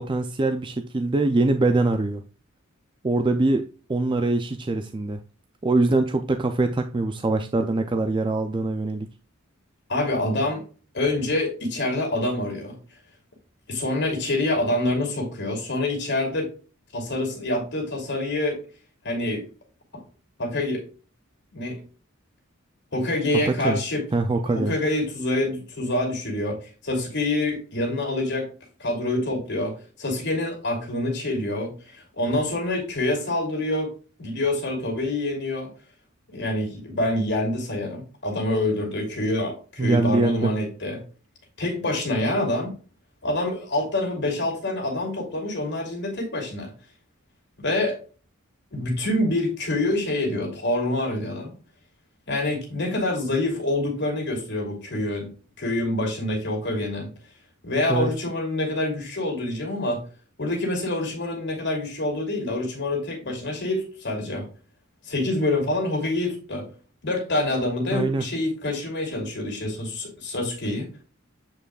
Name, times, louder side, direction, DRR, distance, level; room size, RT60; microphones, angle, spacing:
voice 1, 0.0-2.2 3.0-5.2 5.6-9.1 23.5-23.8 24.1-24.7 39.8-40.5 57.9-58.1 67.9-68.3, right 2 dB, 25° right, 0.4 m, -23 dB
voice 2, 9.9-10.6 10.9-12.8 13.7-16.5 16.9-18.6 19.0-19.5 19.9-20.0 20.4-20.8 21.5-21.8 22.9-24.0 24.5-26.6 26.8-28.5 28.8-33.9 34.2-35.7 36.3-41.0 41.6-42.7 43.2-46.7 47.6-48.0 48.7-51.5 52.3-55.3 55.6-57.1 57.6-60.0 60.4-64.5 65.0-66.7 67.0-70.9, left 1 dB, 55° left, 2.9 m, -26 dB
8.6 x 5.1 x 2.4 m
head